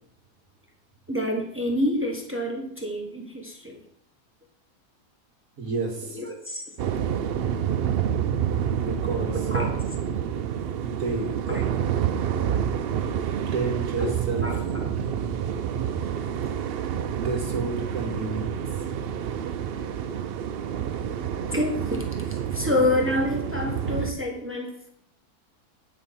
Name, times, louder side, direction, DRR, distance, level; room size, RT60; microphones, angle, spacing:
voice 1, 1.1-3.8 6.0-6.6 9.3-9.8 11.5-11.6 14.0-14.1 14.4-14.5 21.5-22.0 22.5-24.9, left 1 dB, 10° right, 1 dB, 1.1 m, -27 dB
voice 2, 5.6-6.2 8.8-9.5 10.8-11.3 13.4-15.1 17.2-18.6, right 4 dB, 55° right, 2 dB, 2.1 m, -31 dB
sound 1, 6.8-24.1, right 9 dB, 90° right, 0.5 m, -28 dB
9.3 x 5.0 x 5.6 m, 0.70 s
omnidirectional pair, 1.7 m